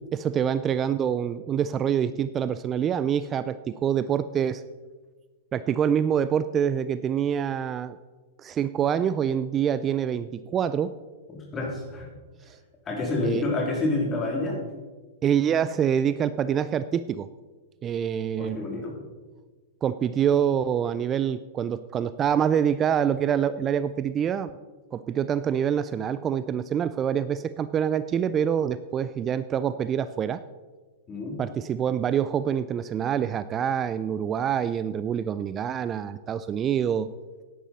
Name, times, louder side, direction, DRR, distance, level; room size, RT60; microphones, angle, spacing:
voice 1, 0.1-4.6 5.5-8.0 8.4-10.9 12.5-12.6 13.2-13.4 15.2-17.3 17.8-18.6 19.8-24.5 24.9-30.4 31.4-37.1, right 8 dB, 25° right, 14 dB, 0.3 m, -26 dB
voice 2, 11.3-12.1 12.8-14.6 18.4-18.9 31.1-31.4, left 2 dB, 25° left, 0 dB, 3.1 m, -28 dB
11.0 x 10.0 x 4.2 m, 1.4 s
hypercardioid pair, 110°, 0 cm